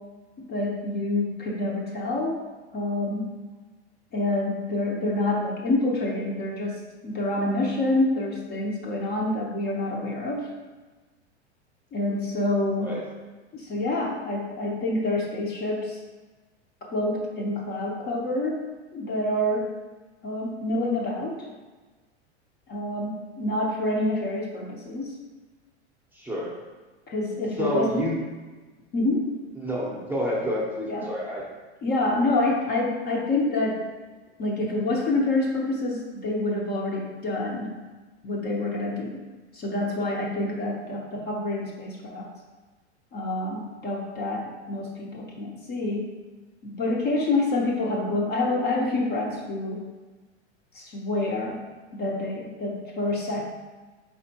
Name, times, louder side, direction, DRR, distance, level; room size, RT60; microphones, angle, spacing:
voice 1, 0.4-2.4 2.7-3.3 4.1-10.5 11.9-12.9 13.5-16.0 16.9-18.7 18.9-19.7 20.2-21.4 22.7-25.2 27.1-28.0 28.9-29.3 30.9-31.1 31.8-33.8 34.4-37.7 38.2-39.2 39.5-42.3 43.1-46.1 46.6-49.8 50.7-51.6 51.9-53.4, left 2 dB, 30° left, -1 dB, 0.7 m, -27 dB
voice 2, 26.1-26.5 27.6-28.2 29.6-31.4, equal, 5° right, -4 dB, 0.7 m, -28 dB
4.5 x 3.5 x 2.8 m, 1.3 s
hypercardioid pair, 110°, 34 cm